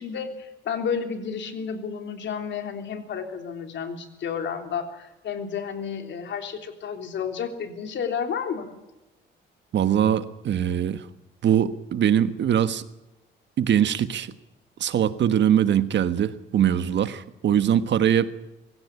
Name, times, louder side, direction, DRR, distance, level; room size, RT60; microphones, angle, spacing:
voice 1, 0.0-8.7, left 6 dB, 65° left, 5 dB, 3.5 m, -31 dB
voice 2, 9.7-11.0 11.4-12.8 13.6-14.3 14.8-18.3, right 9 dB, 65° right, 11 dB, 1.4 m, -22 dB
24.5 x 16.0 x 8.4 m, 0.98 s
cardioid pair, 90°, 20 cm